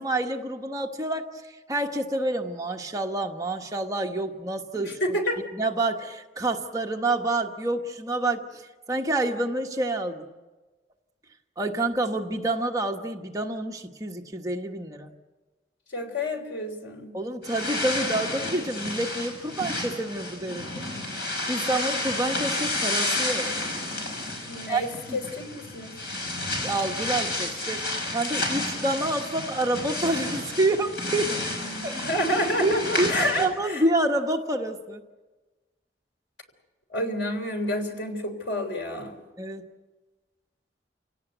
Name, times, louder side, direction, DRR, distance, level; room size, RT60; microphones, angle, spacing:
voice 1, 0.0-5.2 5.5-8.6 8.9-10.3 11.6-15.1 17.1-20.8 21.2-23.5 24.7-24.8 25.1-25.2 26.6-27.8 28.1-31.4 31.8-32.0 32.6-35.0 39.4-39.6, right 2 dB, 20° right, 2 dB, 1.3 m, -28 dB
voice 2, 4.7-5.4 15.9-17.1 24.4-25.9 31.6-33.8 36.9-39.1, left 1 dB, 90° left, 5 dB, 3.6 m, -29 dB
sound 1, 17.4-33.5, left 2 dB, 65° left, 5.7 m, -31 dB
29.0 x 17.5 x 8.0 m, 1.2 s
head